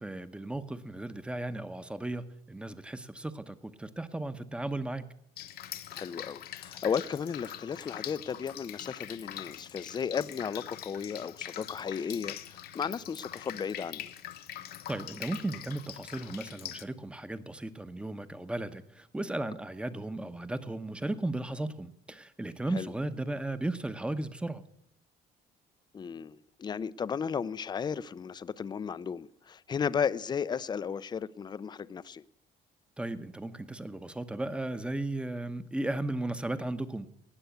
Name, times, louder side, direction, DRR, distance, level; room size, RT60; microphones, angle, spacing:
voice 1, 0.0-5.1 14.9-24.6 33.0-37.1, right 2 dB, 5° right, 11 dB, 0.8 m, -35 dB
Drip, 5.4-16.8, left 11 dB, 65° left, 0.9 m, -43 dB
voice 2, 5.9-14.1 22.7-22.9 25.9-32.2, left 7 dB, 25° left, 17 dB, 0.5 m, -34 dB
19.0 x 6.9 x 8.1 m, 0.76 s
cardioid pair, 110°, 17 cm